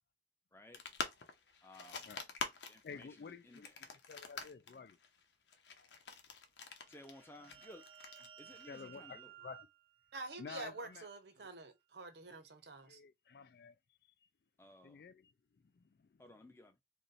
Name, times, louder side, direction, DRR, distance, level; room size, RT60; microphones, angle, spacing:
voice 1, 0.5-0.8 1.6-2.1 2.7-3.7 6.9-7.9 8.4-9.3 14.6-15.0 16.2-16.8, left 1 dB, 15° left, 0.6 m, -57 dB
sound 1, 0.7-9.0, left 5 dB, 80° left, 0.7 m, -47 dB
voice 2, 2.8-5.0 8.7-9.7 10.4-11.1 11.4-11.5 12.8-14.3 14.8-16.2, left 5 dB, 60° left, 0.3 m, -52 dB
sound 2, 6.7-11.1, right 11 dB, 30° right, 0.5 m, -58 dB
voice 3, 10.1-13.0, right 3 dB, 70° right, 0.8 m, -48 dB
2.9 x 2.6 x 3.9 m
head